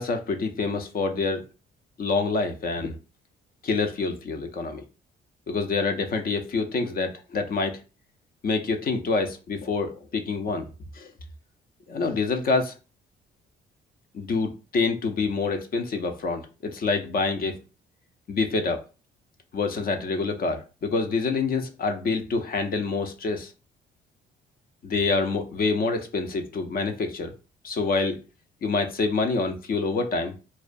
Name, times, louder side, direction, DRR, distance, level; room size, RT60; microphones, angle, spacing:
voice 1, 0.0-1.4 2.0-2.9 3.6-4.8 5.5-7.8 8.4-10.7 10.9-11.1 11.9-12.7 14.1-17.6 18.3-18.8 19.5-23.5 24.8-27.3 27.6-28.2 28.6-30.3, left 4 dB, 50° left, 6 dB, 0.5 m, -26 dB
2.4 x 2.2 x 2.5 m, 0.32 s
cardioid pair, 90°, 20 cm